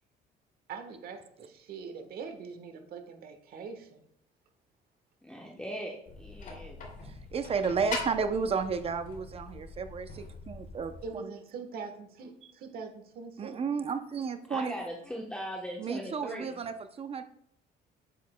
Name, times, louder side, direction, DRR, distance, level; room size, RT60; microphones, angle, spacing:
voice 1, 0.7-4.0 11.0-13.6, right 5 dB, 65° right, 6 dB, 1.3 m, -43 dB
voice 2, 5.2-6.8 14.5-16.6, equal, 5° left, -1 dB, 1.0 m, -39 dB
sound 1, 6.1-11.1, left 4 dB, 55° left, 2.7 m, -42 dB
voice 3, 7.0-11.3 13.4-14.7 15.8-17.2, right 5 dB, 35° right, 9 dB, 0.6 m, -32 dB
8.4 x 8.2 x 2.2 m, 0.70 s
cardioid pair, 110°, 17 cm